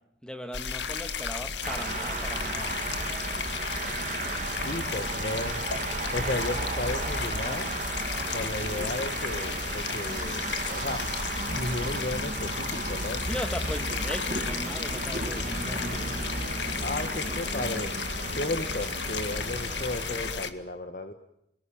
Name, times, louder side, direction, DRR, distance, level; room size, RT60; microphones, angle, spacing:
voice 1, 0.2-2.7 13.2-16.1, equal, 5° left, 7 dB, 2.0 m, -38 dB
sound 1, 0.5-20.5, left 6 dB, 85° left, 1.8 m, -34 dB
sound 2, 1.6-20.3, right 2 dB, 45° right, 2.6 m, -34 dB
voice 2, 4.5-5.6 6.1-7.7 8.3-11.0 11.4-13.2 16.8-17.9 18.3-21.1, left 2 dB, 50° left, 7 dB, 1.4 m, -34 dB
27.0 x 20.0 x 8.8 m, 0.80 s
head